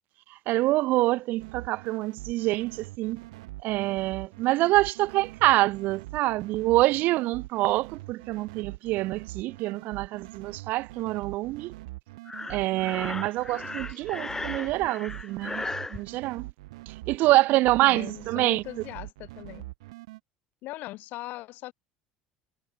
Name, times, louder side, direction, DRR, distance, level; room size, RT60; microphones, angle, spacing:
voice 1, 0.5-3.2 3.6-11.7 12.5-16.5 16.9-18.6, right 18 dB, 65° right, 2.5 m, -26 dB
sound 1, 1.4-20.2, right 20 dB, 80° right, 3.7 m, -43 dB
Breathing, 12.3-16.0, left 3 dB, 15° left, 2.7 m, -36 dB
voice 2, 17.8-19.7 20.6-21.7, left 18 dB, 65° left, 6.3 m, -40 dB
hypercardioid pair, 80°, 3 cm